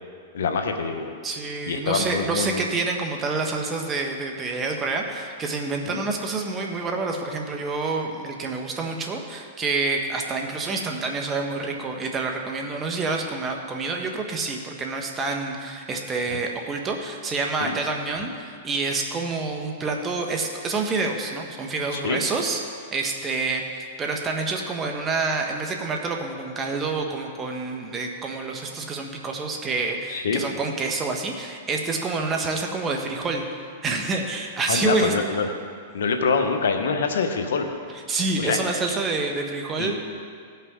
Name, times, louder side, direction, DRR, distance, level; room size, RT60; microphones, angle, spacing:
voice 1, 0.3-1.1 1.7-2.7 5.9-6.0 16.3-16.4 17.6-17.7 21.9-22.2 30.1-30.4 34.7-35.5 35.9-37.7 38.4-38.6 38.9-39.0 39.8-39.9, left 5 dB, 80° left, 5 dB, 1.0 m, -25 dB
voice 2, 1.2-22.6 22.9-33.4 33.8-35.1 38.1-40.0, right 3 dB, 20° right, 2 dB, 1.2 m, -27 dB
17.0 x 5.7 x 3.7 m, 2.1 s
hypercardioid pair, 125°, 0 cm